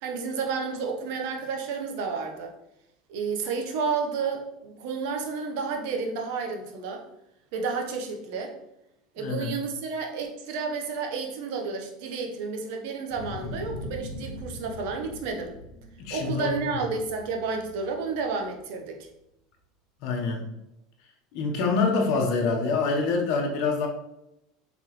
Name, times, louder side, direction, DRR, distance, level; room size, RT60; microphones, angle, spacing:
voice 1, 0.0-2.5 3.1-7.0 7.5-8.5 9.1-15.5 16.1-19.0, right 4 dB, 70° right, 3 dB, 0.9 m, -31 dB
voice 2, 9.2-9.5 16.0-16.8 20.0-20.4 21.3-23.9, left 4 dB, 65° left, 2 dB, 1.0 m, -26 dB
sound 1, 13.1-18.6, left 1 dB, 35° left, 1.3 m, -41 dB
3.8 x 3.7 x 3.0 m, 0.85 s
supercardioid pair, 105°, 0 cm